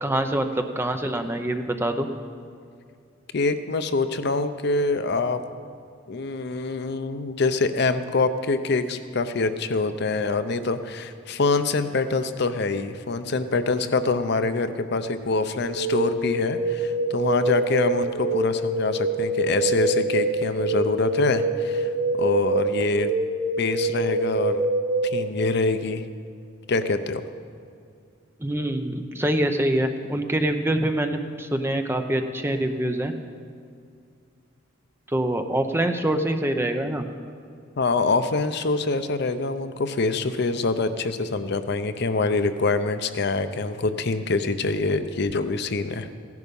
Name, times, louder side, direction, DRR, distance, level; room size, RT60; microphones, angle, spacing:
voice 1, 0.0-2.1 28.4-33.1 35.1-37.1, right 1 dB, 10° right, 6 dB, 0.7 m, -25 dB
voice 2, 3.3-5.4 6.1-21.9 22.2-23.1 23.6-24.6 25.1-26.0 26.7-27.2 37.8-46.1, left 3 dB, 55° left, 10 dB, 0.6 m, -25 dB
sound 1, 15.6-25.2, right 2 dB, 70° right, 1.9 m, -25 dB
16.0 x 11.0 x 5.4 m, 2.3 s
head